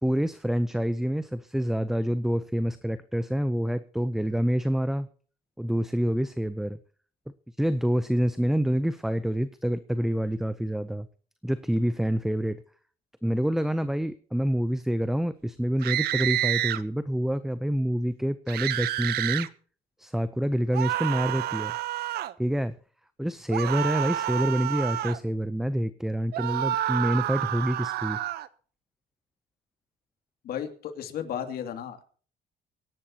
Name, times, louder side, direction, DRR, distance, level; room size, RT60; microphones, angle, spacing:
voice 1, 0.0-5.1 5.6-6.8 7.6-11.1 11.4-12.6 13.2-19.5 20.0-21.7 22.4-22.7 23.2-28.2, equal, ahead, 14 dB, 0.6 m, -27 dB
sound 1, 15.8-16.8 18.5-19.5 20.7-22.3 23.5-25.2 26.3-28.5, right 13 dB, 70° right, 0.8 m, -29 dB
voice 2, 30.4-32.0, left 9 dB, 65° left, 7 dB, 2.5 m, -34 dB
25.0 x 11.0 x 2.9 m, 0.44 s
cardioid pair, 110°, 17 cm